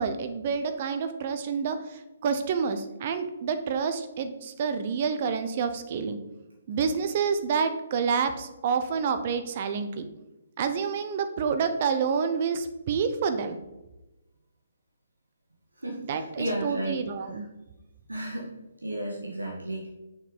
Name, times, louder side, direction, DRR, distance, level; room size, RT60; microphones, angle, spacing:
voice 1, 0.0-6.2 6.7-10.1 10.6-13.6 16.1-17.5, right 6 dB, 40° right, 9 dB, 0.7 m, -28 dB
voice 2, 15.8-17.0 17.3-17.4 18.1-18.5 18.8-19.9, right 1 dB, 85° right, -3 dB, 1.7 m, -33 dB
6.5 x 6.4 x 3.9 m, 1.0 s
figure-of-eight pair, 135°, 0 cm